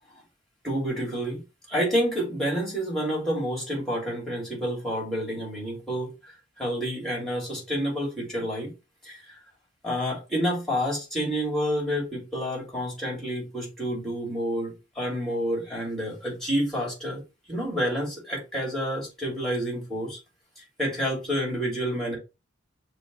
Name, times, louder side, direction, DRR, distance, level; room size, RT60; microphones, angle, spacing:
voice 1, 0.6-1.4 1.7-6.1 6.6-8.7 9.0-9.2 9.8-17.2 17.5-20.2 20.8-22.2, equal, ahead, 2.7 m, -29 dB
6.7 x 2.6 x 3.1 m
head